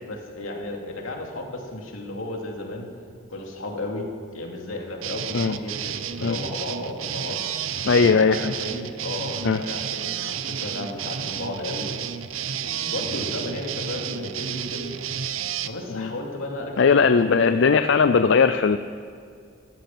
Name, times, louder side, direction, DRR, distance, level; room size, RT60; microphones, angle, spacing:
voice 1, 0.0-2.9 3.3-7.4 7.9-11.9 12.6-15.0 15.6-17.6, left 1 dB, 85° left, 1 dB, 2.8 m, -34 dB
sound 1, 5.0-15.7, right 8 dB, 85° right, 0.7 m, -31 dB
voice 2, 7.8-8.5 9.4-9.6 15.9-16.1 16.8-18.8, left 5 dB, 60° left, 10 dB, 0.4 m, -18 dB
15.5 x 13.5 x 6.1 m, 2.3 s
head